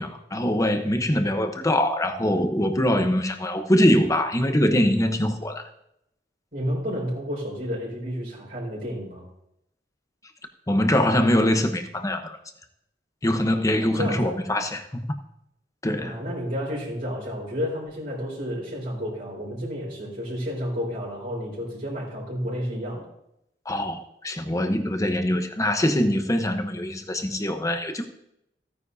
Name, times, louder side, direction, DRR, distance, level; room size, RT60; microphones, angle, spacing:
voice 1, 0.0-5.7 10.7-12.4 13.2-15.1 15.8-16.2 23.7-24.0 24.2-28.1, left 1 dB, 20° left, 0.9 m, -23 dB
voice 2, 6.5-9.3 13.8-14.4 16.0-23.1, equal, 60° right, 4.3 m, -31 dB
16.0 x 9.7 x 2.7 m
head